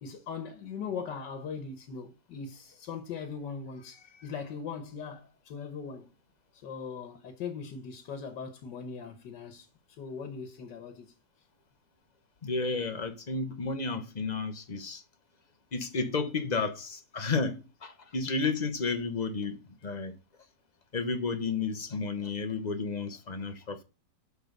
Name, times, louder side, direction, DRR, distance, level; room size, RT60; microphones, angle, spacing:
voice 1, 0.0-6.1 6.5-9.7 10.0-11.1, left 6 dB, 90° left, 1.8 m, -40 dB
voice 2, 12.4-15.0 15.7-20.2 20.9-23.8, left 4 dB, 35° left, 0.8 m, -32 dB
11.0 x 3.9 x 6.6 m
omnidirectional pair, 1.8 m